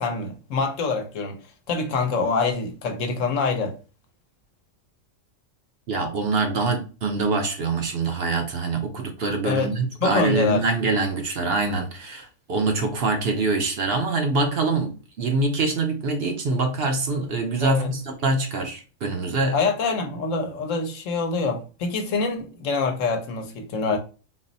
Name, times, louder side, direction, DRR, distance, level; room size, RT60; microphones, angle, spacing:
voice 1, 0.0-1.4 1.7-3.7 9.4-9.7 10.0-10.6 17.6-17.9 19.5-24.0, left 4 dB, 70° left, 1.1 m, -25 dB
voice 2, 5.9-19.6, right 3 dB, 55° right, 0.8 m, -24 dB
4.0 x 2.0 x 3.9 m
omnidirectional pair, 1.4 m